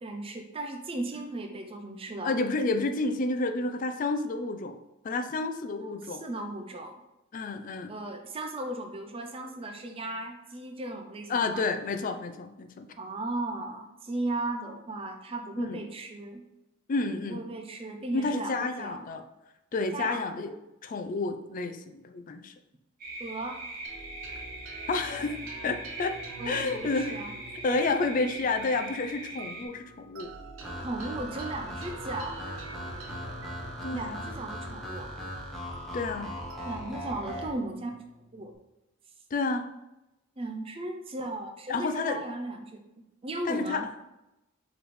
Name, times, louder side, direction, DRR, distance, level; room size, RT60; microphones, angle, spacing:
voice 1, 0.0-2.4 5.8-6.9 7.9-11.7 13.0-16.4 17.2-19.0 19.9-20.4 23.2-23.6 26.4-27.3 30.8-32.5 33.9-35.2 36.6-37.9 38.3-38.5 40.4-43.9, right 2 dB, 25° right, 4 dB, 0.4 m, -36 dB
voice 2, 2.2-4.8 5.0-6.2 7.3-7.9 11.3-12.9 15.6-15.8 16.9-17.4 18.1-19.2 19.7-20.5 20.8-22.5 24.9-25.4 25.6-26.2 26.5-27.1 27.6-30.3 33.8-34.3 35.9-36.3 39.3-39.7 41.7-42.2 43.5-43.8, left 3 dB, 40° left, 7 dB, 0.4 m, -30 dB
sound 1, 23.0-29.7, right 2 dB, 45° right, 1.1 m, -41 dB
sound 2, 23.8-38.5, right 2 dB, 70° right, 0.8 m, -47 dB
sound 3, 30.6-37.5, equal, ahead, 0.9 m, -39 dB
4.9 x 3.2 x 3.1 m, 0.93 s
head